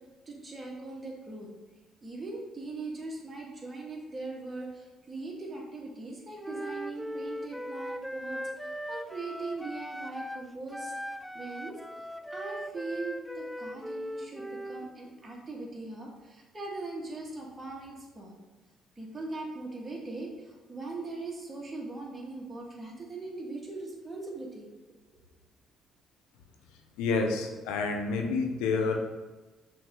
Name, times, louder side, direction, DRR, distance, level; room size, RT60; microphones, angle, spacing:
voice 1, 0.3-1.5 2.0-8.4 8.7-10.9 11.3-11.8 12.3-18.4 19.0-24.7, right 3 dB, 30° right, -2 dB, 1.9 m, -40 dB
Wind instrument woodwind instrument, 6.4-10.5 10.7-14.9, equal, ahead, 0.4 m, -39 dB
voice 2, 27.0-29.0, left 4 dB, 85° left, 3 dB, 0.7 m, -28 dB
5.9 x 3.6 x 5.2 m, 1.2 s
supercardioid pair, 65°, 0 cm